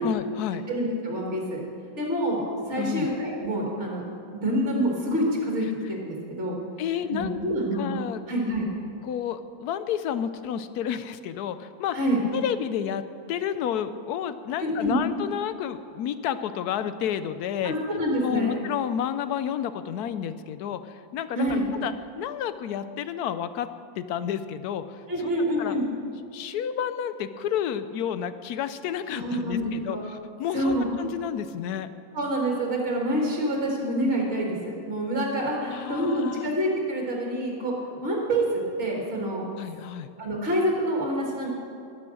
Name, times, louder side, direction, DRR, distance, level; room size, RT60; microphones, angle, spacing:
voice 1, 0.0-0.7 2.8-3.1 6.8-7.4 7.8-8.2 9.0-12.0 12.3-13.0 13.3-17.7 18.2-23.7 24.0-25.7 26.3-31.9 35.6-36.5 39.6-40.1, left 9 dB, 90° left, 12 dB, 1.2 m, -31 dB
voice 2, 0.7-1.6 2.0-2.4 2.7-4.0 4.3-6.6 7.1-7.9 8.3-8.7 11.9-12.2 14.6-15.0 17.6-18.6 21.4-21.6 25.1-25.8 29.1-30.0 30.5-30.9 32.1-37.7 38.0-38.4 38.8-39.4 40.2-41.5, right 1 dB, 50° right, -2 dB, 2.4 m, -27 dB
13.0 x 9.7 x 6.4 m, 2.5 s
omnidirectional pair, 1.6 m